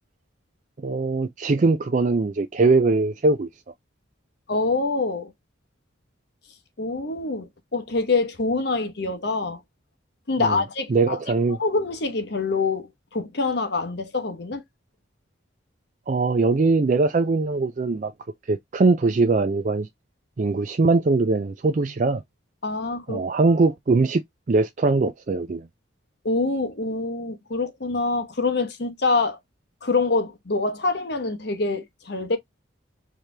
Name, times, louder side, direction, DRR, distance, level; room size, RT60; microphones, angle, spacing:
voice 1, 0.8-3.5 10.4-10.6 10.9-11.6 16.1-18.1 18.5-19.9 20.4-22.2 23.1-24.2 24.5-25.7, right 3 dB, 40° right, 0.4 m, -21 dB
voice 2, 4.5-5.3 6.8-9.6 10.3-11.2 11.5-14.6 22.6-23.2 26.2-29.4 29.8-32.4, left 3 dB, 55° left, 1.0 m, -25 dB
4.8 x 2.9 x 3.3 m
head